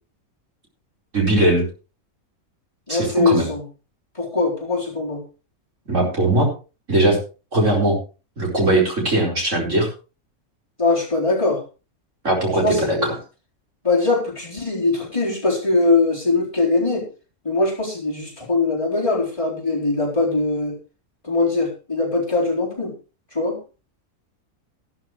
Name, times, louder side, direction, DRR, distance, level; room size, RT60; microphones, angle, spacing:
voice 1, 1.1-1.7 2.9-3.5 5.9-6.5 6.9-7.2 7.5-8.0 8.4-9.9 12.2-13.1, right 1 dB, 55° right, -2 dB, 5.1 m, -19 dB
voice 2, 2.9-3.6 4.1-5.2 10.8-11.6 12.6-13.1 13.8-17.1 17.4-20.8 21.2-22.9 23.3-23.6, left 3 dB, 20° left, -4 dB, 4.0 m, -21 dB
14.0 x 13.0 x 3.2 m, 0.33 s
omnidirectional pair, 1.5 m